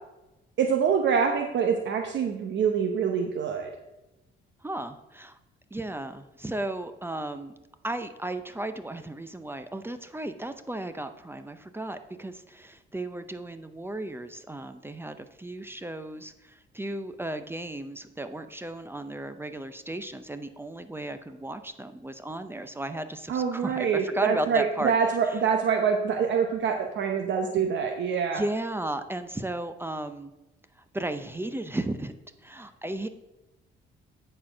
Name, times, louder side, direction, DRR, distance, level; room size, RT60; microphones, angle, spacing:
voice 1, 0.6-3.7 23.3-28.4, right 6 dB, 65° right, 3 dB, 0.9 m, -25 dB
voice 2, 4.6-5.4 5.7-7.5 7.8-25.0 25.3-25.4 28.3-30.3 30.9-32.1 32.4-33.1, right 1 dB, 10° right, 10 dB, 0.6 m, -35 dB
10.0 x 4.4 x 6.0 m, 0.99 s
cardioid pair, 90°, 20 cm